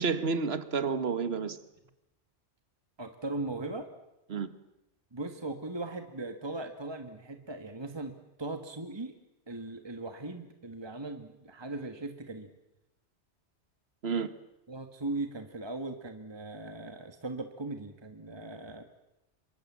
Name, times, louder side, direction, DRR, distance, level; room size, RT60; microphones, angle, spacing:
voice 1, 0.0-1.6 4.3-4.5 14.0-14.3, right 5 dB, 60° right, 12 dB, 1.6 m, -30 dB
voice 2, 3.0-3.9 5.1-8.1 8.4-9.1 9.5-12.5 14.7-18.8, right 2 dB, 20° right, 7 dB, 1.7 m, -38 dB
27.0 x 23.5 x 7.5 m, 0.91 s
omnidirectional pair, 1.2 m